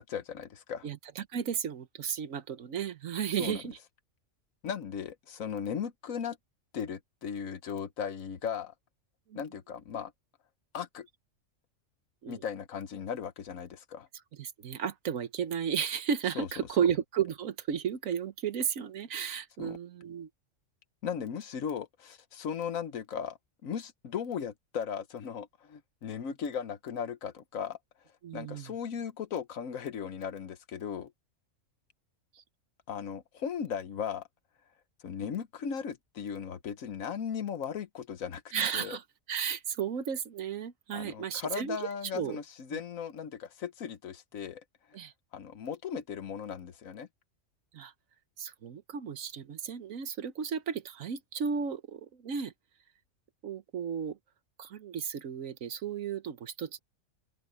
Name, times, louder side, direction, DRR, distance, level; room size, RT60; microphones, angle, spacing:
voice 1, 0.0-0.9 3.4-3.6 4.6-6.4 6.7-8.7 9.3-10.1 10.7-11.1 12.3-14.1 16.3-16.5 19.6-19.8 21.0-27.8 28.3-31.1 32.9-34.3 35.0-38.4 38.7-39.0 40.9-44.6 45.3-47.1, left 7 dB, 85° left, 1.4 m, -37 dB
voice 2, 0.8-3.8 9.3-9.4 12.2-12.4 14.4-20.3 28.2-28.7 32.4-32.5 38.5-41.8 42.1-42.4 42.7-42.8 44.9-45.1 47.7-47.9 48.4-52.5 53.4-54.2 54.6-56.8, right 8 dB, 80° right, 1.5 m, -34 dB
open air
omnidirectional pair, 1.4 m